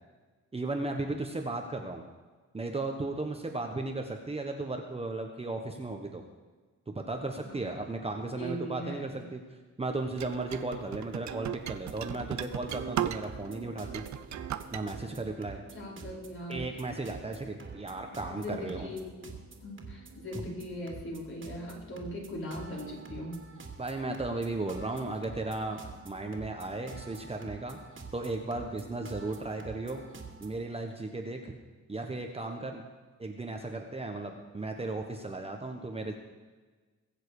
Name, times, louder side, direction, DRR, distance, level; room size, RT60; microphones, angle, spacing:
voice 1, 0.5-2.0 2.5-6.2 6.9-9.4 9.8-14.0 14.7-15.6 16.5-18.9 23.8-27.8 28.1-30.0 30.4-31.5 31.9-32.8 33.2-36.2, right 2 dB, 20° right, 3 dB, 1.3 m, -35 dB
voice 2, 8.4-9.2 15.7-16.7 18.3-23.4, equal, 45° left, -3 dB, 4.7 m, -40 dB
sound 1, 10.2-13.5 13.8-14.8, right 11 dB, 70° right, 0.7 m, -36 dB
sound 2, 11.7-30.5, right 4 dB, 40° right, 2.5 m, -48 dB
22.5 x 7.6 x 5.0 m, 1.3 s
cardioid pair, 105°, 30 cm